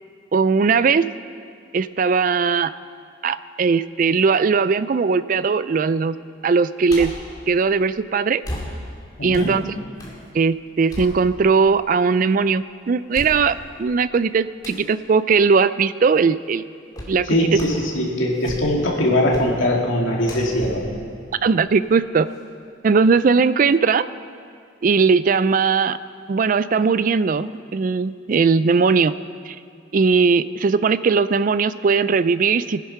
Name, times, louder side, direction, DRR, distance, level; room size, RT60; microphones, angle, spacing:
voice 1, 0.3-1.0 1.7-2.7 3.2-6.2 6.4-7.1 7.5-8.4 9.2-9.6 10.3-16.6 17.1-17.3 21.4-22.3 22.8-24.1 24.8-26.0 26.3-29.1 29.5-29.6 29.9-32.8, right 5 dB, 40° right, 15 dB, 0.3 m, -19 dB
sound 1, 6.9-7.3 8.4-10.2 10.6-11.7 12.2-12.3 13.1-13.8 14.6-14.9 16.9-17.2 17.5-17.9 18.3-18.9 19.3-19.6 20.2-21.9 22.3-22.4, left 1 dB, 20° left, 2.2 m, -35 dB
voice 2, 9.2-9.6 17.2-20.8, left 1 dB, 75° left, -2 dB, 2.5 m, -21 dB
19.0 x 10.0 x 5.8 m, 2.3 s
head